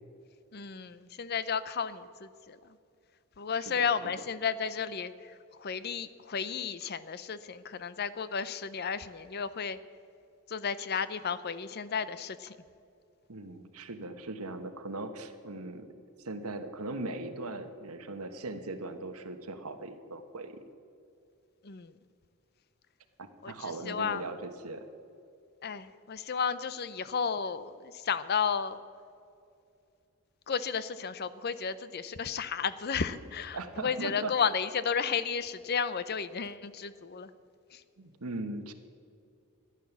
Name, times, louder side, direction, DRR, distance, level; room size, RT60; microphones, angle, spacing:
voice 1, 0.5-2.6 3.4-5.3 5.6-9.8 10.5-12.6 21.6-21.9 23.4-24.2 25.6-28.8 30.5-37.3 37.7-37.8, left 6 dB, 45° left, 15 dB, 0.6 m, -33 dB
voice 2, 3.5-3.8 13.3-15.9 16.2-20.6 23.2-24.9 33.5-34.3 38.0-38.7, right 2 dB, 85° right, 8 dB, 1.3 m, -39 dB
14.0 x 11.0 x 7.1 m, 2.5 s
head